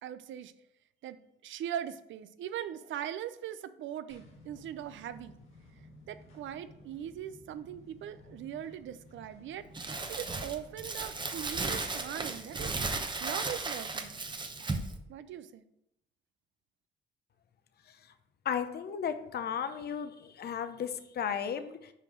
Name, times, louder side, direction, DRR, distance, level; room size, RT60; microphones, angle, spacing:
voice 1, 0.0-0.5 1.0-5.4 6.1-12.7 13.2-14.2 15.1-15.6, right 10 dB, 75° right, 13 dB, 0.6 m, -40 dB
sound 1, 4.1-14.7, left 1 dB, 85° left, 2.0 m, -56 dB
Crumpling crinkling, 9.7-15.0, right 3 dB, 25° right, 0.9 m, -35 dB
voice 2, 18.4-21.9, left 7 dB, 55° left, 10 dB, 0.7 m, -35 dB
5.8 x 4.9 x 6.1 m, 0.79 s
cardioid pair, 90°, 20 cm